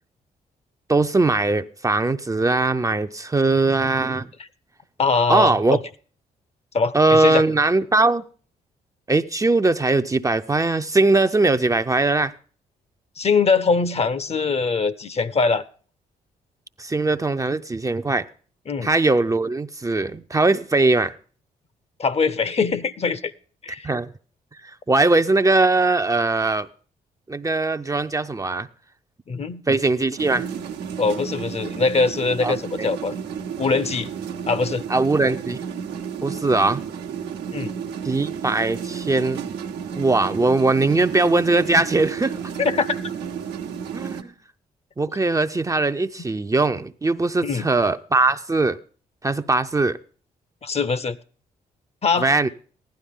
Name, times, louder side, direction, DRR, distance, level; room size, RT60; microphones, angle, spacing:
voice 1, 0.9-4.3 5.3-5.8 6.9-8.2 9.1-12.3 16.8-18.3 18.8-21.1 23.8-24.1 24.6-26.7 27.3-28.7 29.7-30.5 32.4-32.9 34.9-35.6 36.2-36.8 38.0-39.4 39.9-42.3 43.9-44.3 45.0-48.8 49.2-50.0 52.2-52.5, right 3 dB, 20° right, 0.6 m, -20 dB
voice 2, 5.0-5.8 6.7-7.4 13.2-15.6 18.7-18.9 22.0-23.3 23.6-23.9 29.3-29.6 31.0-33.2 33.6-34.1 34.5-34.8 37.5-37.7 42.6-43.1 47.4-47.7 50.6-51.2 52.0-52.3, left 4 dB, 40° left, 0.8 m, -22 dB
sound 1, 30.2-44.2, right 7 dB, 85° right, 1.1 m, -32 dB
15.0 x 11.5 x 3.6 m
cardioid pair, 70°, 17 cm